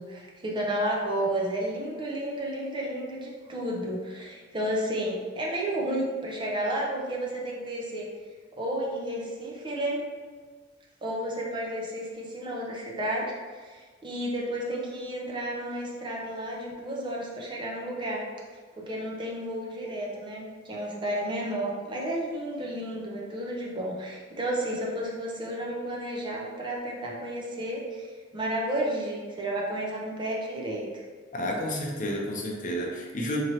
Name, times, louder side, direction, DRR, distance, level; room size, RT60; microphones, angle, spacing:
voice 1, 0.0-8.1 8.6-10.0 11.0-13.3 13.6-18.2 18.8-30.9, right 1 dB, 25° right, -2 dB, 0.6 m, -32 dB
voice 2, 31.3-33.4, equal, 45° left, 0 dB, 0.6 m, -30 dB
4.3 x 2.9 x 2.8 m, 1.5 s
head